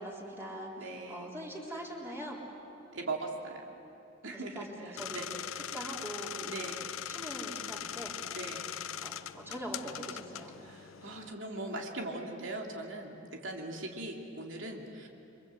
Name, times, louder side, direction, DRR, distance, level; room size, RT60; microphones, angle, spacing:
voice 1, 0.0-2.4 4.3-5.3 5.7-6.8 7.1-8.1 9.0-10.5 13.5-13.7, right 1 dB, 10° right, -3 dB, 3.8 m, -43 dB
voice 2, 0.8-1.3 2.9-3.6 4.2-5.3 6.4-6.9 8.3-8.8 10.6-15.1, right 2 dB, 65° right, 1 dB, 2.6 m, -40 dB
sound 1, 5.0-11.3, left 9 dB, 85° left, 0.6 m, -41 dB
29.0 x 24.0 x 7.9 m, 2.9 s
head